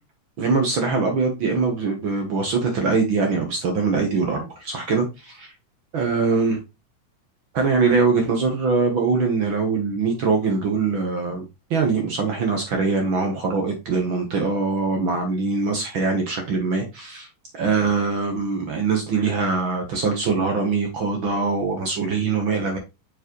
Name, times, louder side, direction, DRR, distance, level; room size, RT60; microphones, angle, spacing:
voice 1, 0.4-5.5 5.9-6.6 7.5-11.4 11.7-17.3 17.5-22.8, right 4 dB, 55° right, 1.5 m, -22 dB
6.8 x 4.9 x 3.0 m
omnidirectional pair, 3.6 m